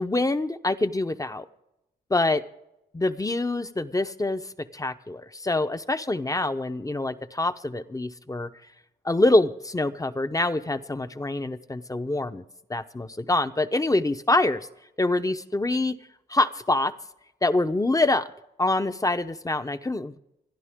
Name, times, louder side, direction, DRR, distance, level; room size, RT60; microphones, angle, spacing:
voice 1, 0.0-1.4 2.1-2.4 2.9-8.5 9.0-12.4 12.7-14.7 15.0-16.0 16.3-16.9 17.4-18.3 18.6-20.2, left 2 dB, 15° left, 10 dB, 0.9 m, -25 dB
27.0 x 11.0 x 3.7 m, 0.87 s
cardioid pair, 65°, 19 cm